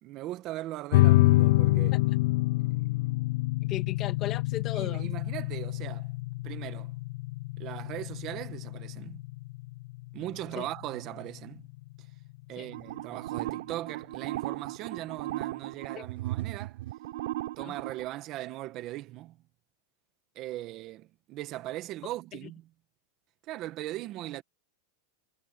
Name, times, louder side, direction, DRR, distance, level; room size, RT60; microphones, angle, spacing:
voice 1, 0.0-2.0 4.7-6.1 6.4-6.9 7.6-9.3 10.1-11.7 12.5-16.8 17.6-19.4 20.3-22.7 23.5-24.4, right 15 dB, 35° right, 1.7 m, -39 dB
sound 1, 0.9-11.9, left 19 dB, 60° left, 0.7 m, -27 dB
voice 2, 3.6-5.1 10.6-10.7 12.6-12.7 16.0-16.1 17.6-17.8, left 13 dB, 30° left, 2.4 m, -37 dB
sound 2, 12.7-18.1, right 16 dB, 65° right, 4.7 m, -36 dB
supercardioid pair, 160°, 0 cm